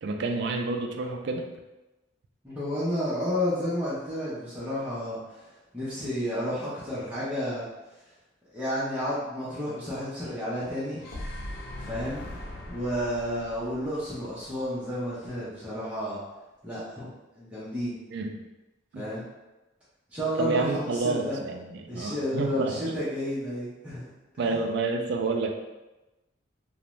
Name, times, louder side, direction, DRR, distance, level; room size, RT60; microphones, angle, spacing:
voice 1, 0.0-1.5 18.1-18.4 18.9-19.0 20.4-22.9 24.4-25.5, right 3 dB, 60° right, 4 dB, 0.3 m, -29 dB
voice 2, 2.4-5.4 5.7-7.7 8.5-11.0 11.8-12.3 12.7-16.2 16.6-17.1 17.3-17.9 19.0-19.2 20.1-21.4 21.9-24.1 24.4-24.6, equal, 5° right, -11 dB, 0.6 m, -31 dB
sound 1, 10.7-14.9, left 1 dB, 55° left, 0.4 m, -40 dB
2.5 x 2.1 x 3.0 m, 1.1 s
head